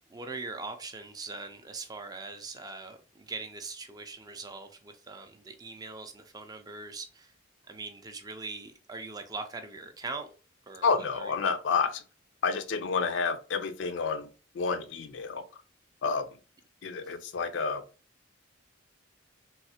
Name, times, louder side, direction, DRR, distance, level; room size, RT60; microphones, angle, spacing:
voice 1, 0.1-7.3 7.7-10.3 10.7-11.3 17.0-17.1, right 3 dB, 20° right, 0.4 m, -41 dB
voice 2, 10.8-12.0 12.4-14.3 14.5-15.4 16.0-16.3 16.8-17.8, left 5 dB, 65° left, 0.4 m, -29 dB
3.2 x 2.8 x 2.7 m
head